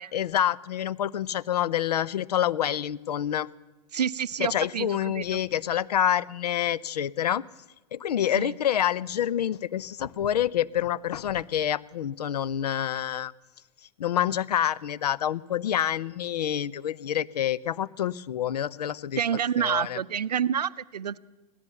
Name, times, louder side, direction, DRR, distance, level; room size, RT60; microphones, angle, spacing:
voice 1, 0.1-3.5 4.4-7.4 7.9-13.3 14.0-19.2 19.6-20.0, left 10 dB, 80° left, 18 dB, 0.5 m, -27 dB
voice 2, 3.9-5.4 8.4-8.5 19.2-21.2, right 8 dB, 90° right, 17 dB, 0.5 m, -28 dB
16.5 x 12.5 x 6.9 m, 1.1 s
hypercardioid pair, 105°, 20 cm